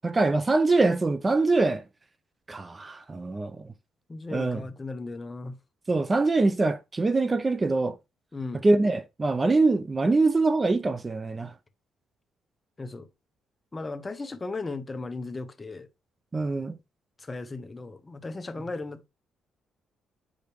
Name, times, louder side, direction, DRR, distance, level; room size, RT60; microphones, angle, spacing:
voice 1, 0.0-1.8 2.5-3.7 4.3-4.6 5.9-8.0 8.6-11.5 16.3-16.8, right 3 dB, 25° right, 0.6 m, -24 dB
voice 2, 4.1-5.6 8.3-8.7 12.8-13.1 13.7-15.9 17.2-19.1, left 3 dB, 25° left, 0.8 m, -36 dB
8.0 x 5.0 x 3.1 m
cardioid pair, 90°, 0 cm